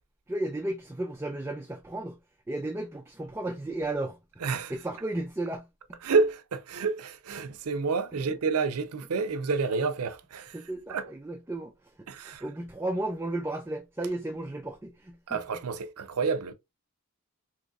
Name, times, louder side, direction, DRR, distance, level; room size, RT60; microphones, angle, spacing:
voice 1, 0.3-2.2 2.5-4.2 4.7-6.0 8.3-8.4 10.5-15.4, right 1 dB, 10° right, 0.3 m, -34 dB
voice 2, 4.4-4.7 6.0-10.6 10.9-11.0 12.1-12.4 15.3-16.5, right 4 dB, 85° right, 0.5 m, -29 dB
3.9 x 2.9 x 2.3 m
head